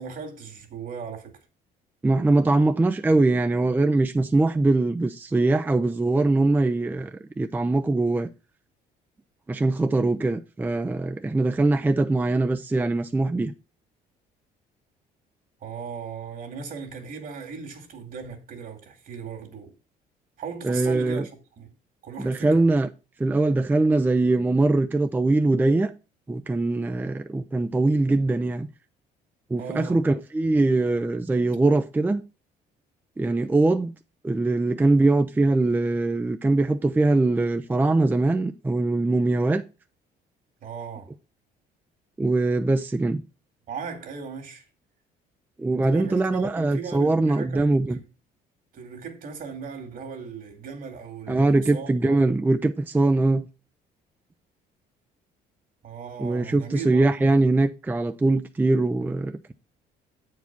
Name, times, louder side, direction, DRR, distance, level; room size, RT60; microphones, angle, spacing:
voice 1, 0.0-1.3 15.6-19.7 20.4-21.3 21.6-21.7 22.0-22.7 29.6-30.0 40.6-41.1 43.7-44.6 45.8-48.1 48.7-52.4 55.8-57.3, right 5 dB, 55° right, 2.1 m, -37 dB
voice 2, 2.0-8.3 9.5-13.5 20.6-21.2 22.2-22.9 23.2-25.9 26.3-28.7 29.5-32.2 33.2-33.9 34.2-39.6 42.2-43.2 45.6-48.0 51.3-53.5 56.2-59.5, right 2 dB, 10° right, 0.5 m, -22 dB
8.2 x 4.7 x 5.8 m
cardioid pair, 110°, 17 cm